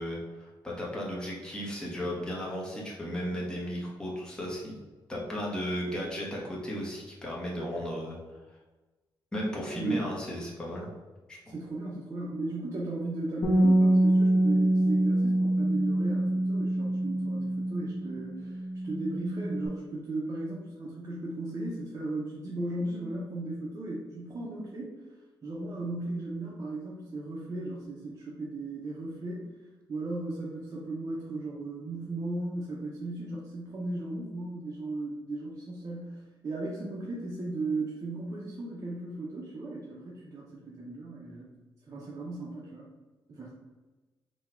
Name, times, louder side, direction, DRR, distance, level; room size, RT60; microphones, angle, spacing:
voice 1, 0.0-4.8 5.1-8.4 9.3-10.9 11.3-11.5, equal, 10° left, -5 dB, 0.9 m, -35 dB
voice 2, 9.7-10.0 11.5-24.9 25.4-29.5 29.9-41.5 41.9-42.9 43.3-43.5, right 2 dB, 35° right, -5 dB, 0.7 m, -36 dB
Bass guitar, 13.4-19.7, right 1 dB, 60° left, 0.9 m, -25 dB
4.1 x 2.3 x 4.3 m, 1.2 s
wide cardioid pair, 155°, 9 cm